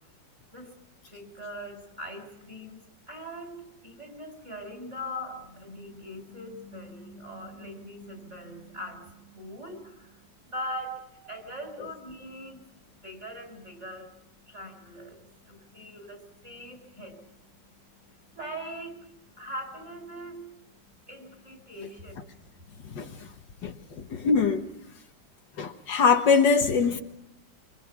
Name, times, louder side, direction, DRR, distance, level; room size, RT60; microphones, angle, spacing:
voice 1, 1.1-12.6 13.0-20.5 20.8-23.8, equal, 35° right, 5.0 m, -42 dB
voice 2, 22.8-23.3 23.6-24.7 25.6-27.0, left 5 dB, 70° left, 1.9 m, -23 dB
25.5 x 24.5 x 6.0 m
omnidirectional pair, 2.1 m